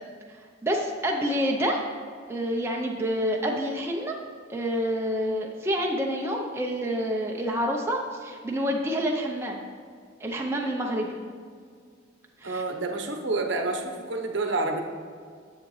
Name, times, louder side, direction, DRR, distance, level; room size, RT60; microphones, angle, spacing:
voice 1, 0.3-1.8 2.3-4.2 4.5-9.6 10.2-11.2 12.4-12.6, equal, 10° right, 0 dB, 0.5 m, -28 dB
voice 2, 12.4-14.8, right 3 dB, 65° right, 3 dB, 0.8 m, -28 dB
9.9 x 7.7 x 3.1 m, 2.1 s
head